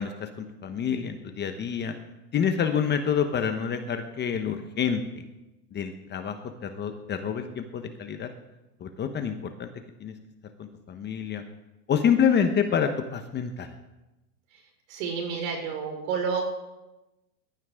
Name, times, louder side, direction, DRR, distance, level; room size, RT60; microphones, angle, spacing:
voice 1, 0.0-1.9 2.3-5.2 5.7-8.3 8.8-9.7 10.0-10.1 10.6-11.4 11.9-13.7, left 7 dB, 20° left, 7 dB, 1.2 m, -27 dB
voice 2, 14.9-16.5, right 5 dB, 60° right, 2 dB, 5.4 m, -29 dB
21.0 x 13.0 x 3.7 m, 0.99 s
hypercardioid pair, 125°, 47 cm